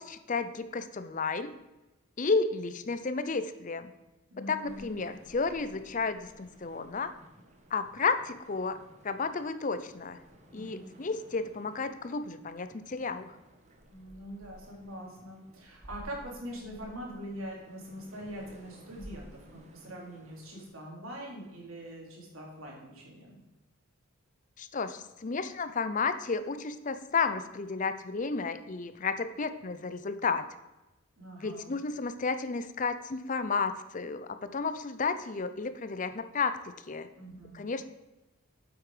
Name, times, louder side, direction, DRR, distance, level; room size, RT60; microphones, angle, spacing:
voice 1, 0.0-1.5 2.2-3.9 4.4-7.1 7.7-8.8 9.0-10.2 10.5-13.4 24.6-30.4 31.4-37.1 37.5-37.9, left 4 dB, 35° left, 11 dB, 0.5 m, -32 dB
voice 2, 4.3-4.9 10.5-10.9 13.9-23.4 31.2-31.8 37.2-37.6, equal, 75° right, -2 dB, 3.4 m, -43 dB
sound 1, 4.6-20.7, equal, 35° right, 1.3 m, -55 dB
8.6 x 8.0 x 5.0 m, 1.0 s
head